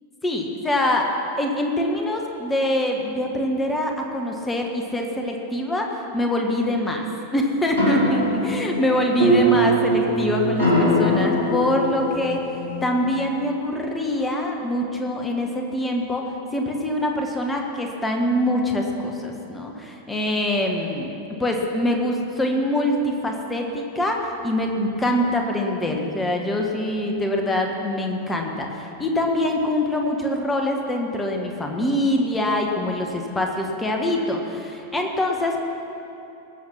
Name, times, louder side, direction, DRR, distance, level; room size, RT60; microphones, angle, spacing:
voice 1, 0.2-1.1 1.4-7.0 7.3-12.5 12.8-35.7, left 1 dB, 10° left, 2 dB, 1.3 m, -24 dB
sound 1, 7.7-12.9, equal, 90° right, 3.0 m, -22 dB
19.5 x 7.9 x 6.0 m, 2.9 s
figure-of-eight pair, 90°, 0 cm